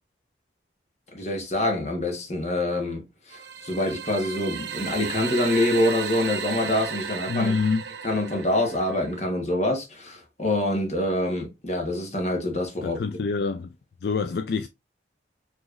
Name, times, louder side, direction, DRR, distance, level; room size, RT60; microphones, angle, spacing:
voice 1, 1.1-3.0 3.3-7.5 8.0-13.0, left 1 dB, 35° left, 1.1 m, -26 dB
sound 1, 3.3-9.2, right 7 dB, 70° right, 0.5 m, -34 dB
voice 2, 7.3-7.8 12.8-13.7 14.0-14.7, left 4 dB, 60° left, 0.4 m, -26 dB
4.9 x 3.0 x 2.4 m
head